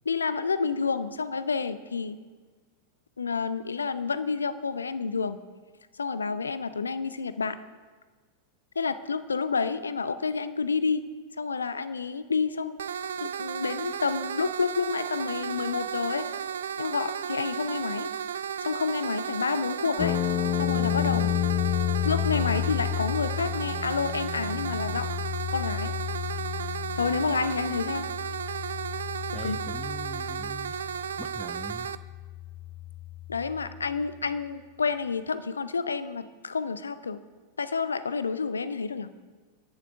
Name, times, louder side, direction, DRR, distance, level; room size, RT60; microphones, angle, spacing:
voice 1, 0.0-2.2 3.2-5.4 5.9-7.6 8.7-11.0 11.4-12.8 13.2-16.3 16.8-18.1 18.6-20.2 20.5-21.3 22.0-25.1 25.5-26.0 26.9-28.1 29.3-29.6 33.3-37.2 37.6-39.1, left 5 dB, 75° left, 13 dB, 0.6 m, -29 dB
sound 1, 12.8-32.0, right 8 dB, 65° right, 0.4 m, -34 dB
sound 2, 20.0-34.0, left 14 dB, 35° left, 0.3 m, -32 dB
voice 2, 29.3-30.8 31.2-31.9, left 1 dB, 5° left, 11 dB, 0.7 m, -42 dB
29.5 x 11.0 x 2.6 m, 1.4 s
figure-of-eight pair, 90°, 0 cm